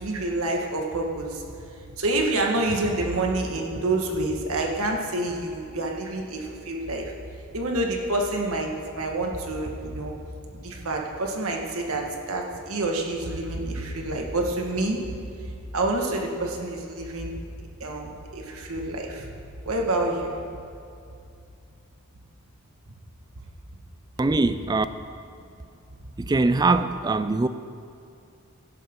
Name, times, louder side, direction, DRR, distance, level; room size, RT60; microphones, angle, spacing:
voice 1, 0.0-1.4 2.0-7.1 7.5-10.1 10.6-15.0 15.4-17.3 17.6-19.3 19.7-20.4, right 2 dB, 80° right, 1 dB, 1.7 m, -28 dB
voice 2, 24.2-24.9 26.2-27.5, right 3 dB, 20° right, 12 dB, 0.4 m, -22 dB
16.0 x 11.0 x 3.8 m, 2.5 s
head